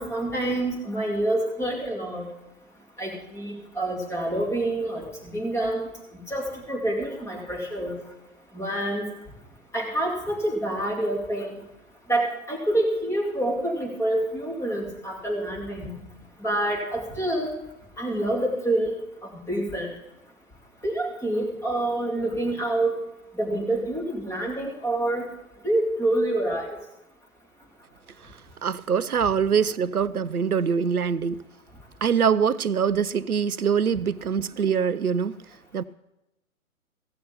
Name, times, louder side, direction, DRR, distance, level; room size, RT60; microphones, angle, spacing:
voice 1, 0.0-2.3 3.0-5.9 6.1-8.0 8.5-9.0 9.7-11.6 12.1-15.9 16.4-17.5 18.0-18.9 19.2-19.9 20.8-23.0 23.3-25.2 25.6-26.7, right 1 dB, 5° left, 2.5 m, -27 dB
voice 2, 28.6-31.4 32.0-35.4 35.7-35.8, right 7 dB, 90° right, 0.6 m, -24 dB
15.5 x 6.9 x 6.9 m
figure-of-eight pair, 125°, 43 cm